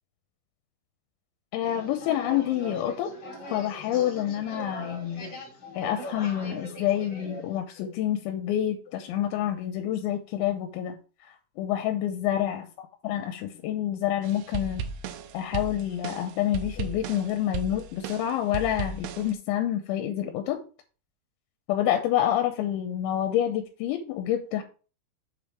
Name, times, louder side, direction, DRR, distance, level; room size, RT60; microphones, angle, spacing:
voice 1, 1.5-3.1 3.5-5.3 5.8-10.9 11.2-12.7 13.0-14.8 15.3-20.6 21.7-24.6, left 11 dB, 85° left, 6 dB, 2.9 m, -28 dB
sound 1, 1.6-7.6, equal, 40° left, 1.7 m, -41 dB
sound 2, 14.2-19.3, right 6 dB, 80° right, 2.5 m, -36 dB
7.5 x 3.6 x 6.1 m, 0.36 s
omnidirectional pair, 5.6 m